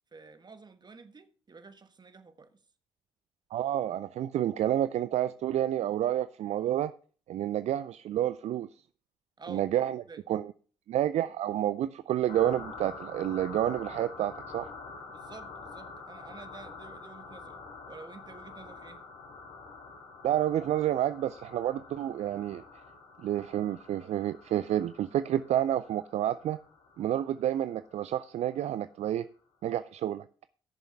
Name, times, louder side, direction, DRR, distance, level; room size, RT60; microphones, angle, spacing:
voice 1, 0.1-2.6 9.4-9.7 10.1-10.2 15.1-17.6 17.9-19.0, right 4 dB, 35° right, 1.3 m, -50 dB
voice 2, 3.5-6.9 7.3-8.7 9.5-10.5 10.9-14.7 20.2-22.6 23.2-26.6 27.0-29.3 29.6-30.3, right 11 dB, 55° right, 0.4 m, -29 dB
sound 1, 12.3-28.5, left 4 dB, 65° left, 2.9 m, -47 dB
15.5 x 7.0 x 3.4 m
hypercardioid pair, 45°, 13 cm